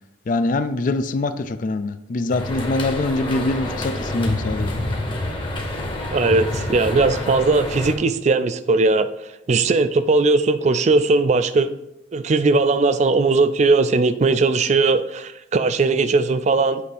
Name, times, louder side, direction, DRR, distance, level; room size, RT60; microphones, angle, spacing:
voice 1, 0.3-4.8, left 2 dB, 45° left, 11 dB, 0.4 m, -24 dB
sound 1, 2.3-8.0, left 1 dB, 25° left, 0.9 m, -27 dB
voice 2, 6.1-9.1 9.5-11.7 12.1-16.8, right 3 dB, 35° right, 12 dB, 0.3 m, -18 dB
8.0 x 2.8 x 4.9 m, 0.83 s
head